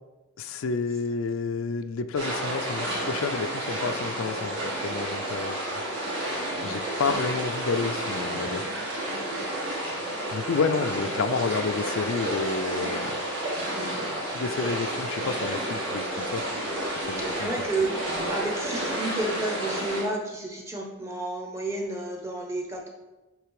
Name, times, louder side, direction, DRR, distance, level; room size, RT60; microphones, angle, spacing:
voice 1, 0.4-4.6 4.8-5.8 6.6-8.7 10.3-13.2 14.3-16.4 17.0-17.7, left 5 dB, 80° left, 9 dB, 0.4 m, -30 dB
sound 1, 2.2-20.0, right 1 dB, 60° right, 2.3 m, -31 dB
voice 2, 17.4-22.9, right 2 dB, 15° right, 1 dB, 1.0 m, -32 dB
8.2 x 3.4 x 4.8 m, 1.1 s
head